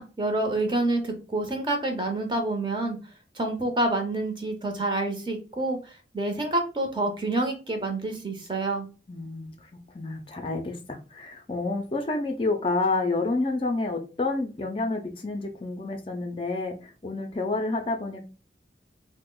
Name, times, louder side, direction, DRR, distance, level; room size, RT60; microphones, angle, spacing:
voice 1, 0.0-3.0 3.3-8.9, right 2 dB, 25° right, 0.6 m, -28 dB
voice 2, 9.1-9.7 9.9-18.2, left 3 dB, 30° left, 0.4 m, -29 dB
2.8 x 2.1 x 3.7 m
head